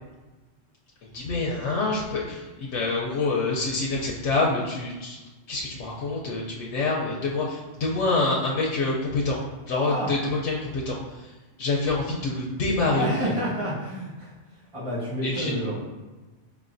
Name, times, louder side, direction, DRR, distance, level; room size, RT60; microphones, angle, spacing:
voice 1, 1.1-5.2 5.5-9.4 9.7-11.0 11.6-13.3 15.2-15.5, left 3 dB, 85° left, -3 dB, 0.9 m, -26 dB
voice 2, 12.9-14.3 14.7-15.8, equal, 30° right, -7 dB, 1.1 m, -29 dB
4.8 x 3.1 x 2.5 m, 1.2 s
omnidirectional pair, 1.2 m